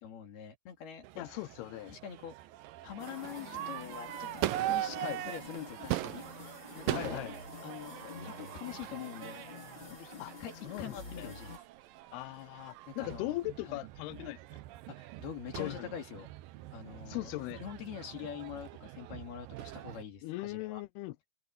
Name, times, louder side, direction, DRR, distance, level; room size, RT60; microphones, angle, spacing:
voice 1, 0.0-1.3 1.9-2.3 2.8-4.3 4.6-5.0 5.2-6.2 6.8-7.4 7.6-8.0 8.2-9.4 9.9-11.5 12.9-13.4 13.6-13.8 15.0-16.3 16.7-17.3 17.6-20.8, left 8 dB, 60° left, 4.9 m, -44 dB
Crowd / Fireworks, 1.0-20.0, right 15 dB, 85° right, 2.0 m, -41 dB
voice 2, 1.2-2.0 5.0-5.2 6.9-7.4 10.2-10.3 10.6-11.3 12.1-14.4 15.6-16.0 17.1-17.6 20.2-21.2, left 19 dB, 80° left, 2.4 m, -39 dB
sound 1, 3.0-11.6, left 4 dB, 25° left, 6.2 m, -48 dB
omnidirectional pair, 5.1 m